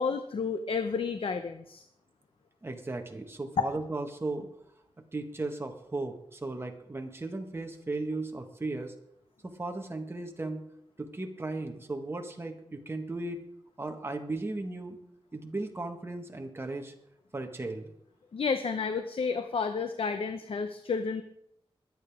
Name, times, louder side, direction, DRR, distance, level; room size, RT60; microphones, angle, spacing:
voice 1, 0.0-1.8 18.3-21.2, left 5 dB, 70° left, 8 dB, 0.8 m, -31 dB
voice 2, 2.6-4.5 5.1-8.9 9.4-10.6 11.0-13.4 13.8-15.0 15.3-16.9 17.3-17.9, right 2 dB, 25° right, 4 dB, 1.7 m, -36 dB
22.0 x 9.0 x 3.6 m, 0.73 s
wide cardioid pair, 105°, 10 cm